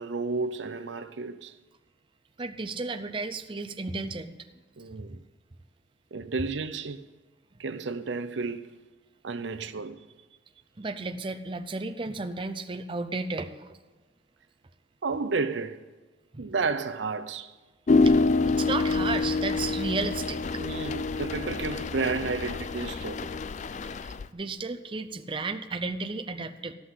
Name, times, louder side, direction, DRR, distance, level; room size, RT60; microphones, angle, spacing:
voice 1, 0.0-1.6 4.8-5.2 6.1-7.0 7.6-8.7 9.2-10.1 15.0-15.8 16.4-17.5 20.6-23.3, right 4 dB, 75° right, 0.6 m, -32 dB
voice 2, 2.4-4.4 10.8-13.8 16.3-16.4 18.0-18.1 18.4-20.6 24.0-26.7, right 3 dB, 25° right, 0.5 m, -33 dB
sound 1, 17.9-24.3, left 3 dB, 40° left, 0.4 m, -27 dB
14.5 x 5.8 x 9.5 m
head